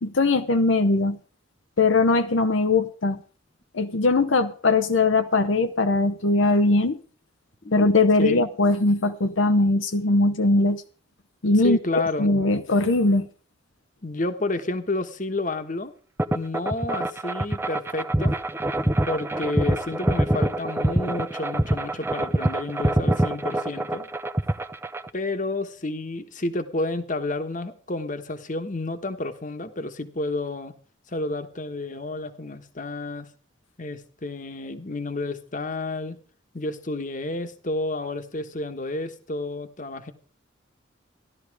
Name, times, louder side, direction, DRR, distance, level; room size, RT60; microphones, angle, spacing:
voice 1, 0.0-1.2 1.8-3.2 3.7-7.0 7.7-10.8 11.4-13.3, left 2 dB, 75° left, 0.9 m, -20 dB
voice 2, 11.6-12.3 14.0-15.9 16.3-18.3 19.0-24.1 25.1-30.7 31.1-33.3 33.8-36.2 36.5-40.1, left 2 dB, 40° left, 1.3 m, -30 dB
sound 1, 16.2-25.1, right 1 dB, 10° right, 0.6 m, -25 dB
14.5 x 12.0 x 4.8 m
head